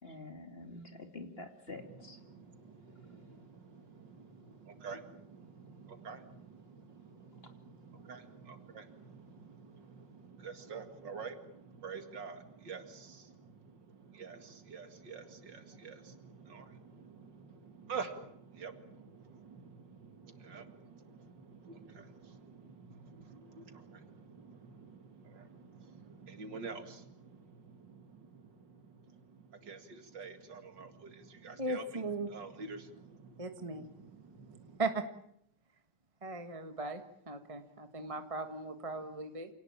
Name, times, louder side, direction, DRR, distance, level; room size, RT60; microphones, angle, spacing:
voice 1, 0.0-2.2, left 2 dB, 30° left, 6 dB, 2.9 m, -47 dB
voice 2, 1.8-34.8, right 5 dB, 80° right, 8 dB, 2.9 m, -49 dB
voice 3, 31.6-32.3 33.4-33.8 34.8-35.0 36.2-39.5, right 2 dB, 20° right, 7 dB, 1.5 m, -38 dB
27.5 x 19.0 x 8.9 m, 0.71 s
omnidirectional pair, 1.9 m